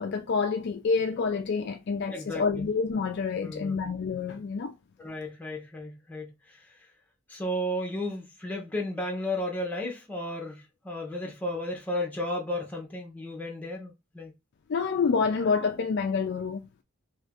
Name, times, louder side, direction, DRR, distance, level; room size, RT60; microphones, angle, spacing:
voice 1, 0.0-4.7 14.7-16.6, left 5 dB, 50° left, 0.3 m, -28 dB
voice 2, 2.1-2.7 3.4-3.9 5.0-6.9 7.3-14.3, left 1 dB, 5° left, 0.8 m, -34 dB
2.8 x 2.6 x 3.5 m
head